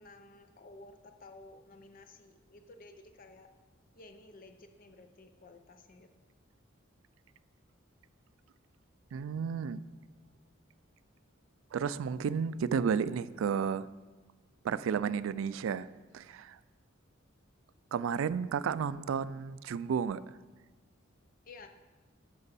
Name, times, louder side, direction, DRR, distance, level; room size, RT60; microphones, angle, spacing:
voice 1, 0.0-3.5 3.9-6.1 21.5-21.7, left 2 dB, 45° left, 6 dB, 0.5 m, -54 dB
voice 2, 9.1-9.8 11.7-13.9 14.6-15.9 16.1-16.6 17.9-20.2, right 6 dB, 75° right, 16 dB, 0.3 m, -32 dB
10.5 x 7.0 x 4.1 m, 1.3 s
head